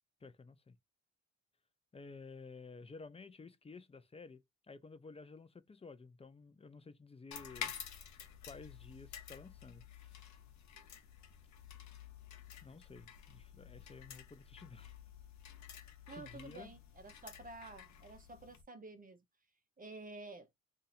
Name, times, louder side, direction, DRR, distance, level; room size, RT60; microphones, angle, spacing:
voice 1, 0.2-0.8 1.9-7.7 8.4-10.2 12.6-14.9 16.1-16.7, left 4 dB, 20° left, 0.6 m, -53 dB
sound 1, 7.3-18.6, left 8 dB, 70° left, 0.9 m, -51 dB
voice 2, 16.1-19.2 19.8-20.5, right 2 dB, 30° right, 0.7 m, -51 dB
2.6 x 2.6 x 4.1 m
cardioid pair, 90°, 30 cm